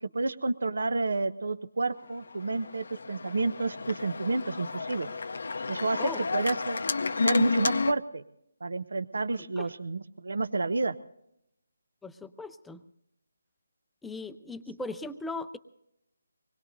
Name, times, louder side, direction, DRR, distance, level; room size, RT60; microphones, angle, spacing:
voice 1, 0.0-5.1 5.7-6.8 7.2-8.2 8.6-10.9, right 3 dB, 70° right, 14 dB, 0.7 m, -30 dB
Organ, 2.1-7.9, left 4 dB, 65° left, 0.6 m, -31 dB
voice 2, 12.0-12.8 14.0-15.6, left 3 dB, 5° left, 10 dB, 0.5 m, -38 dB
25.0 x 20.5 x 2.7 m, 0.80 s
figure-of-eight pair, 160°, 0 cm